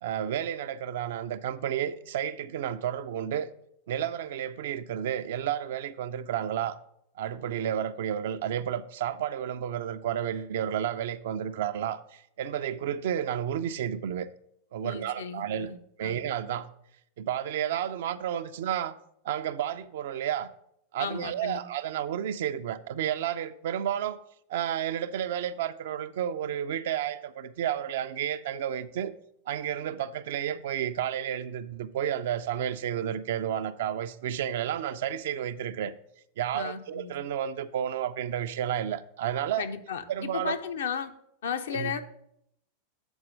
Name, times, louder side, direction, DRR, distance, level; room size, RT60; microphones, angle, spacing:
voice 1, 0.0-3.5 3.9-6.8 7.2-14.3 14.7-15.7 16.0-16.7 17.2-19.0 19.2-20.5 20.9-24.2 24.5-29.1 29.5-35.9 36.4-39.7 40.1-40.6 41.7-41.9, right 10 dB, 55° right, 0.4 m, -31 dB
voice 2, 14.8-15.8 16.0-16.2 21.0-21.6 36.5-37.2 39.6-41.1 41.4-42.0, left 6 dB, 60° left, 0.6 m, -34 dB
7.1 x 4.3 x 6.3 m
figure-of-eight pair, 90°, 0 cm